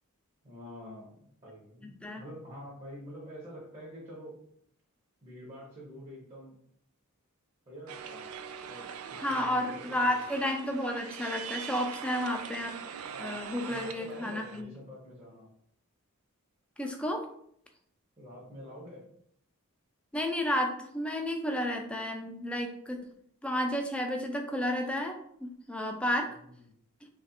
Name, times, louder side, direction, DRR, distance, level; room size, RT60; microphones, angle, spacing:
voice 1, 0.4-4.4 5.2-6.6 7.7-8.3 8.7-10.2 13.7-15.5 18.2-19.1 26.3-26.6, equal, 30° right, -5 dB, 0.9 m, -47 dB
voice 2, 1.8-2.2 9.2-12.7 13.2-14.7 16.8-17.3 20.1-23.0 23.4-26.3, left 1 dB, 5° left, 2 dB, 0.4 m, -32 dB
sound 1, 7.9-14.6, right 7 dB, 65° right, 0.3 m, -42 dB
3.1 x 2.5 x 4.2 m, 0.70 s
head